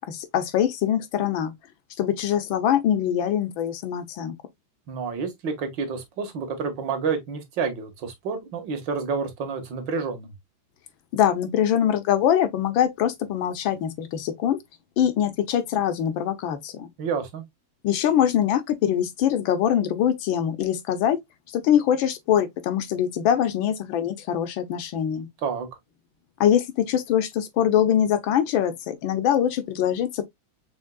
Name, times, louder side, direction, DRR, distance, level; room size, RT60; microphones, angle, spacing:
voice 1, 0.1-1.5 2.0-4.3 11.1-14.6 15.0-16.9 17.8-21.2 21.5-25.3 26.4-30.2, left 10 dB, 75° left, 1.6 m, -23 dB
voice 2, 4.9-10.3 17.0-17.4 25.4-25.7, right 5 dB, 65° right, 1.8 m, -29 dB
6.2 x 3.6 x 2.3 m
omnidirectional pair, 2.2 m